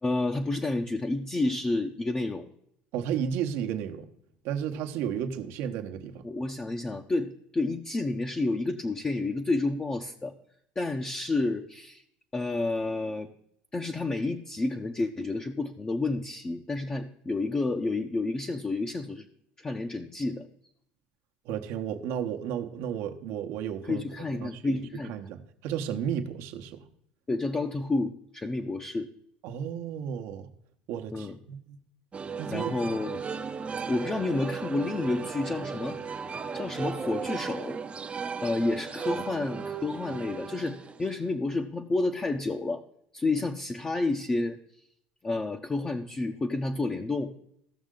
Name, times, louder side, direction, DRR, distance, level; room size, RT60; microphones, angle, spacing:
voice 1, 0.0-2.5 6.2-10.3 10.8-12.0 12.3-13.3 13.7-19.3 19.6-20.5 23.8-25.1 27.3-29.1 31.1-31.4 32.5-33.2 33.9-36.0 36.5-37.8 38.4-42.8 43.1-44.6 45.2-47.3, left 2 dB, 20° left, 0.7 m, -30 dB
voice 2, 2.9-4.1 4.4-6.2 21.4-24.0 24.4-24.8 25.0-26.8 29.4-30.5 30.9-31.8 32.4-32.7, right 8 dB, 70° right, 1.0 m, -33 dB
sound 1, 32.1-41.3, right 5 dB, 25° right, 0.6 m, -36 dB
15.5 x 6.3 x 3.8 m
supercardioid pair, 95°, 4 cm